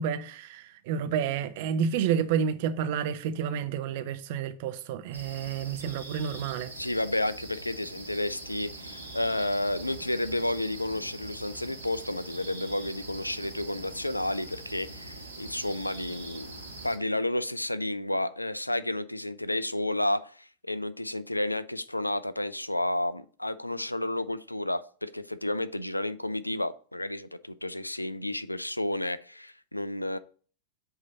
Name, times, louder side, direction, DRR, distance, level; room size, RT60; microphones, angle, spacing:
voice 1, 0.0-6.7, right 7 dB, 50° right, 0.6 m, -30 dB
sound 1, 5.1-17.0, right 2 dB, 80° right, 1.3 m, -43 dB
voice 2, 6.8-30.2, left 1 dB, 85° left, 0.3 m, -31 dB
7.8 x 2.8 x 5.4 m
figure-of-eight pair, 90°, 0 cm